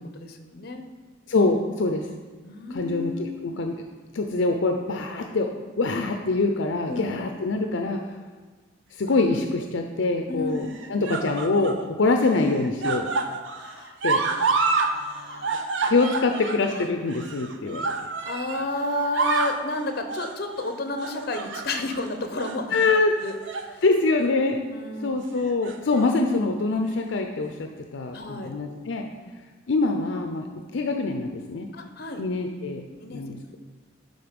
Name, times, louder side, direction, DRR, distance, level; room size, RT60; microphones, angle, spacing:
voice 1, 0.1-0.8 2.4-3.5 6.9-7.1 10.3-10.7 13.5-14.0 14.3-15.6 18.2-22.8 23.2-23.8 24.7-25.2 28.1-28.5 29.3-29.5 31.7-32.2 33.0-33.2, left 2 dB, 55° left, 6 dB, 0.8 m, -32 dB
voice 2, 1.3-2.1 2.7-3.8 4.1-5.5 5.8-8.0 8.9-13.1 14.0-14.2 15.8-17.9 22.7-23.1 23.8-24.7 25.0-29.1 29.7-31.7 32.2-32.8 33.1-33.6, left 3 dB, 70° left, 4 dB, 0.5 m, -24 dB
sound 1, 9.1-9.6 10.5-11.8 12.2-14.9 15.2-18.7 19.0-19.6 20.1-20.4 21.0-22.0 22.4-22.6 23.2-23.7 24.1-24.3 25.4-26.0 26.9-27.0, right 4 dB, 75° right, 0.7 m, -28 dB
10.5 x 3.9 x 5.2 m, 1.4 s
head